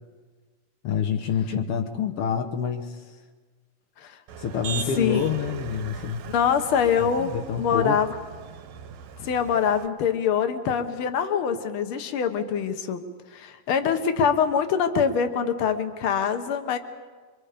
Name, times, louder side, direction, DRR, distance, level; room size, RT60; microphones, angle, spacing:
voice 1, 0.8-3.0 4.4-6.2 7.2-8.0, left 7 dB, 85° left, 4 dB, 1.2 m, -27 dB
Motor vehicle (road), 4.3-9.9, right 7 dB, 80° right, 2.8 m, -39 dB
voice 2, 6.3-8.1 9.2-13.0 13.3-16.8, left 7 dB, 70° left, 8 dB, 1.3 m, -24 dB
27.0 x 24.0 x 5.1 m, 1.4 s
omnidirectional pair, 3.9 m